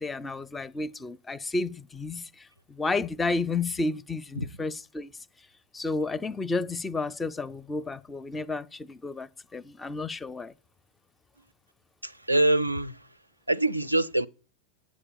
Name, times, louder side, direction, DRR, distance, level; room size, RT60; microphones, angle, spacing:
voice 1, 0.0-5.1 5.7-10.5, left 3 dB, 15° left, 0.4 m, -32 dB
voice 2, 12.0-13.0 13.5-14.3, right 2 dB, 85° right, 0.4 m, -24 dB
8.6 x 7.2 x 8.5 m
figure-of-eight pair, 90°, 0 cm